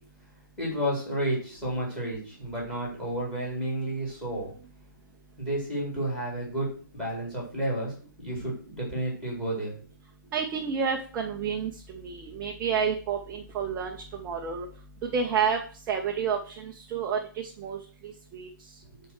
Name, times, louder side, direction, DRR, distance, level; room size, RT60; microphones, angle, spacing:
voice 1, 0.6-4.5 5.4-9.7 10.2-10.3, right 1 dB, 5° left, -3 dB, 4.2 m, -31 dB
voice 2, 10.3-14.7 15.1-15.6 15.9-17.8 18.0-18.5, right 6 dB, 10° right, 2 dB, 0.6 m, -30 dB
9.3 x 4.6 x 6.4 m, 0.41 s
figure-of-eight pair, 160°, 11 cm